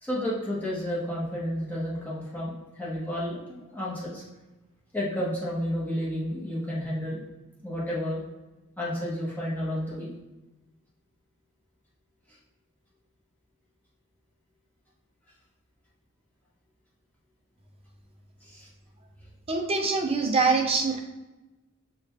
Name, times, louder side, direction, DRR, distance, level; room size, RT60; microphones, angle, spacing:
voice 1, 0.0-4.2 4.9-7.2 7.6-8.2 8.8-10.1 18.4-18.7, equal, 10° left, -7 dB, 1.0 m, -31 dB
voice 2, 19.5-21.0, right 4 dB, 25° right, 2 dB, 0.5 m, -24 dB
4.9 x 2.4 x 3.3 m, 1.1 s
head